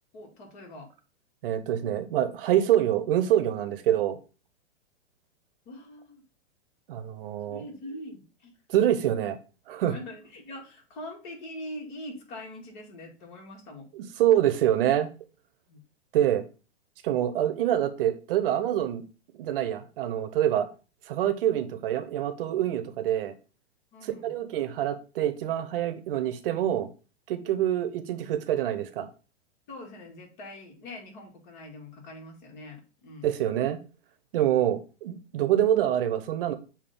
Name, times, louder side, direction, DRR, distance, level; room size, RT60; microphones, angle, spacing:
voice 1, 0.1-0.9 5.7-6.2 7.5-8.5 9.9-13.9 15.7-15.8 23.9-24.3 29.7-33.3, left 1 dB, 45° left, 2.1 m, -43 dB
voice 2, 1.4-4.2 6.9-7.6 8.7-9.4 9.7-9.9 13.9-15.1 16.1-16.4 17.0-19.0 19.4-20.7 21.1-23.3 24.0-26.9 27.3-29.1 33.2-33.8 34.3-36.6, right 11 dB, 55° right, 0.9 m, -26 dB
7.0 x 2.7 x 5.3 m
hypercardioid pair, 120°, 33 cm